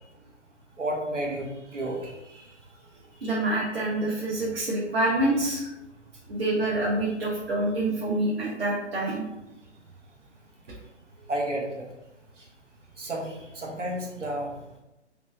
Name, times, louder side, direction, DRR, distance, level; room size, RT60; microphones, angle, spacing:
voice 1, 0.8-2.0 11.3-11.8 12.4-12.5 13.0-14.5, right 1 dB, 85° right, -1 dB, 1.2 m, -31 dB
voice 2, 3.2-5.7 6.3-9.2, right 1 dB, 55° right, -4 dB, 0.9 m, -26 dB
3.2 x 3.1 x 3.2 m, 0.95 s
figure-of-eight pair, 145°, 36 cm